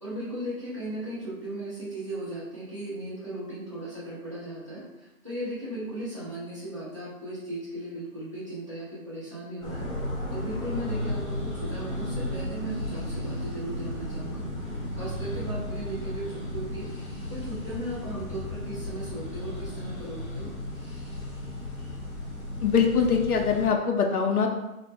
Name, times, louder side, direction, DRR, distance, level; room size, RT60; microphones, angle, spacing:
voice 1, 0.0-9.9 10.3-14.5 14.9-16.9 17.3-20.5, right 1 dB, 25° right, -9 dB, 0.5 m, -37 dB
sound 1, 9.6-23.7, left 1 dB, 30° left, 0.9 m, -34 dB
voice 2, 22.6-24.5, left 6 dB, 80° left, 2 dB, 0.6 m, -23 dB
2.0 x 2.0 x 3.1 m, 0.95 s
figure-of-eight pair, 150°, 44 cm